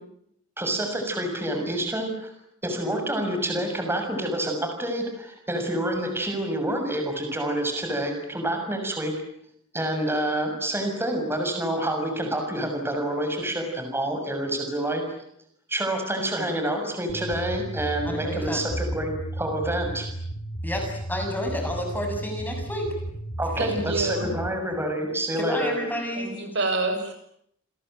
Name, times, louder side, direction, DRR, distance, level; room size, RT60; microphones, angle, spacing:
voice 1, 0.6-2.3 2.6-9.1 9.7-15.0 15.7-20.1 23.4-25.8, right 1 dB, 10° right, 4 dB, 6.6 m, -28 dB
sound 1, 17.1-24.5, right 1 dB, 50° left, 6.4 m, -34 dB
voice 2, 18.0-18.7 20.6-22.9 25.4-26.4, equal, 10° left, 3 dB, 7.2 m, -30 dB
voice 3, 23.7-24.3 26.1-27.1, right 2 dB, 60° right, 6 dB, 7.0 m, -27 dB
29.0 x 22.0 x 9.2 m, 0.72 s
head